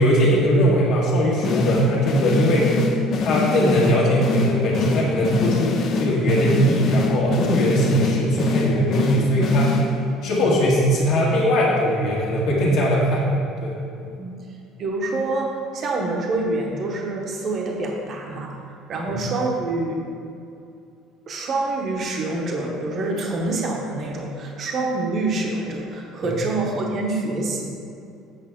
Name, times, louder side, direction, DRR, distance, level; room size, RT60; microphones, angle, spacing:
voice 1, 0.0-2.8 3.2-9.8 10.2-13.3 13.6-13.7 19.0-19.1 26.2-26.4, equal, 55° left, -5 dB, 1.6 m, -20 dB
sound 1, 1.4-10.2, left 4 dB, 40° left, 0.6 m, -25 dB
voice 2, 14.8-18.5 18.9-20.0 21.3-27.7, right 2 dB, 30° right, 0 dB, 0.9 m, -26 dB
8.3 x 5.7 x 3.6 m, 2.6 s
cardioid pair, 170°, 0 cm